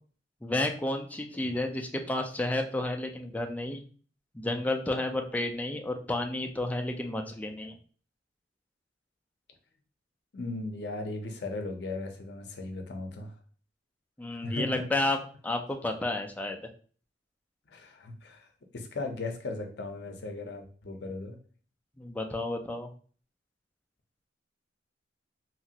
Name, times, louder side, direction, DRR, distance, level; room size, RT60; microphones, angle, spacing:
voice 1, 0.4-3.8 4.3-7.7 14.2-15.2 15.4-16.6 22.0-22.9, left 2 dB, 10° left, 4 dB, 0.3 m, -31 dB
voice 2, 10.3-13.3 14.4-14.8 17.7-18.5 18.7-21.4, left 2 dB, 65° left, 4 dB, 0.6 m, -37 dB
2.9 x 2.4 x 2.7 m, 0.42 s
head